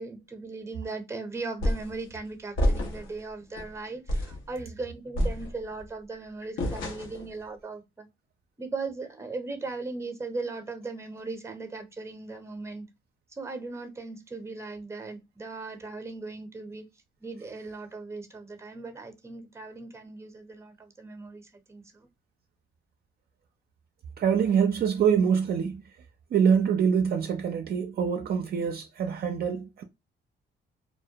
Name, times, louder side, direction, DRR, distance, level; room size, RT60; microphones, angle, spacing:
voice 1, 0.0-8.1 8.6-12.9 13.4-16.8 17.2-22.1, right 3 dB, 15° right, 0.6 m, -38 dB
sound 1, 1.6-2.0 2.6-3.2 3.6-3.7 4.1-4.4 5.1-5.8 6.6-7.3, equal, 85° left, 0.8 m, -28 dB
voice 2, 24.2-25.8 26.3-29.8, right 7 dB, 50° right, 0.4 m, -25 dB
2.2 x 2.1 x 2.6 m
cardioid pair, 90°, 20 cm